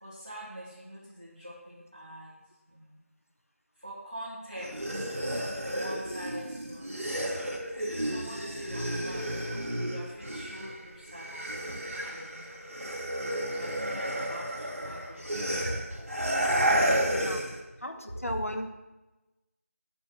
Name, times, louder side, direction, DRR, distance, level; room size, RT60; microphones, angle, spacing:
voice 1, 0.0-2.4 2.7-3.0 3.8-6.9 7.9-12.6 13.5-17.5 18.1-18.3, equal, 25° right, -8 dB, 1.7 m, -44 dB
sound 1, 4.6-10.8 11.1-17.6, right 1 dB, 60° right, 2.6 m, -32 dB
voice 2, 16.7-17.4 17.8-18.7, equal, 65° left, 5 dB, 1.3 m, -36 dB
8.9 x 5.9 x 6.5 m, 1.1 s
figure-of-eight pair, 180°, 8 cm